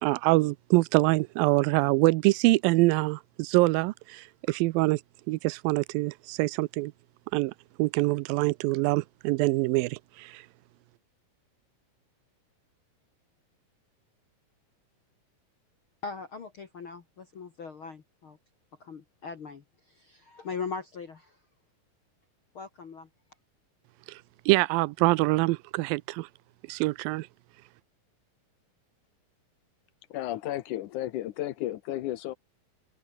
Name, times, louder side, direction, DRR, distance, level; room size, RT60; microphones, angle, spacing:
voice 1, 0.0-5.0 5.3-6.9 7.3-7.5 7.8-10.4 24.1-24.2 24.5-26.3 26.7-27.3, right 22 dB, 85° right, 2.3 m, -25 dB
voice 2, 16.0-18.4 18.8-21.4 22.5-23.1, left 5 dB, 45° left, 2.2 m, -40 dB
voice 3, 30.1-32.3, left 14 dB, 70° left, 2.1 m, -33 dB
open air
omnidirectional pair, 4.1 m